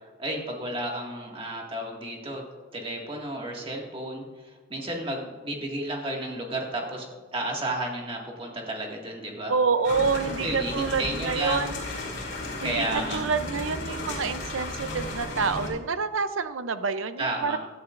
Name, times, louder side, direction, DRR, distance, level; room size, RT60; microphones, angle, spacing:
voice 1, 0.2-2.4 2.7-7.1 7.3-9.5 10.4-11.7 12.6-13.2 17.2-17.6, right 1 dB, 30° right, 0 dB, 2.0 m, -32 dB
voice 2, 9.5-11.8 12.6-17.6, right 5 dB, 85° right, 11 dB, 0.7 m, -27 dB
sound 1, 9.8-15.7, left 2 dB, 65° left, 4.3 m, -34 dB
16.0 x 13.0 x 2.6 m, 1.3 s
head